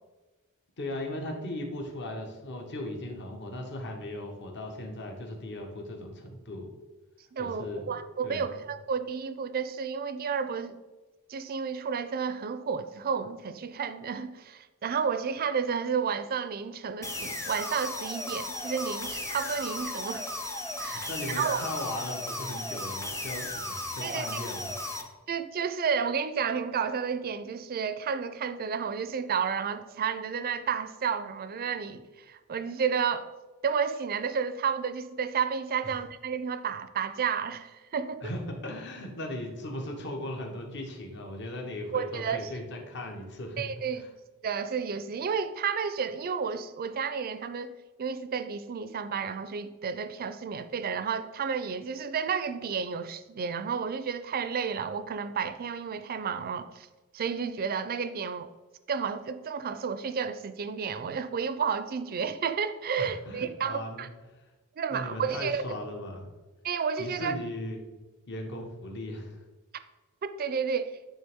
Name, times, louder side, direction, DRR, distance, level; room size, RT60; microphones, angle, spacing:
voice 1, 0.8-6.7 7.4-7.9 8.2-8.6 20.9-25.1 35.8-36.0 38.2-44.1 63.0-64.1 64.9-66.3 67.0-67.9 68.3-69.4, left 1 dB, 55° left, 2 dB, 1.0 m, -38 dB
voice 2, 7.3-10.8 11.3-20.2 20.8-21.1 21.4-21.6 24.0-24.2 25.3-33.3 33.6-38.3 41.9-42.5 43.6-44.0 44.4-56.9 57.1-58.5 58.9-64.1 64.8-65.6 66.6-67.4 70.2-71.0, right 6 dB, 45° right, 11 dB, 0.4 m, -31 dB
sound 1, 17.0-25.0, left 1 dB, 10° left, 0.6 m, -36 dB
9.7 x 3.4 x 3.5 m, 1.2 s
head